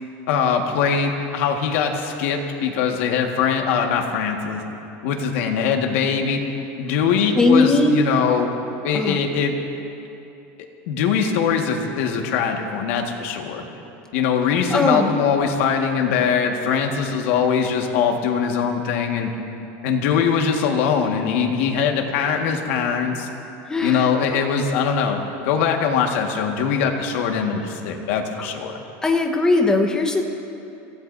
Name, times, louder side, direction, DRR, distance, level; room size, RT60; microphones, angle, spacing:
voice 1, 0.3-4.6 5.0-6.4 6.8-8.5 8.8-9.5 10.9-13.7 14.1-19.3 19.8-23.3 23.8-28.7, left 6 dB, 75° left, 2 dB, 1.7 m, -22 dB
voice 2, 7.4-8.0 8.9-9.2 14.7-15.1 23.7-24.1 29.0-30.2, left 2 dB, 10° left, 3 dB, 1.1 m, -18 dB
26.5 x 16.5 x 2.7 m, 2.8 s
cardioid pair, 160°, 7 cm